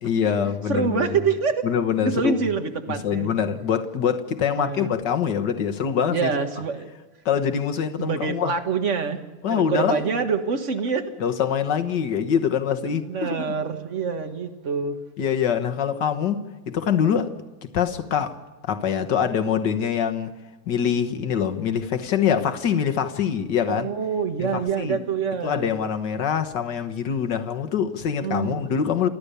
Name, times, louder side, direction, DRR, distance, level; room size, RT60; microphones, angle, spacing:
voice 1, 0.0-1.1 1.6-2.4 2.9-6.3 7.2-8.5 9.4-10.0 11.2-13.5 15.2-17.3 17.6-18.3 18.6-20.3 20.7-23.9 24.4-25.0 25.4-29.1, left 8 dB, 55° left, 7 dB, 1.8 m, -24 dB
voice 2, 0.7-1.7 2.0-3.3 4.5-4.9 6.1-6.9 8.0-9.2 9.5-11.1 12.9-15.0 23.7-25.7 28.2-28.7, right 5 dB, 40° right, 7 dB, 1.5 m, -26 dB
29.5 x 13.0 x 6.8 m, 1.2 s
omnidirectional pair, 2.4 m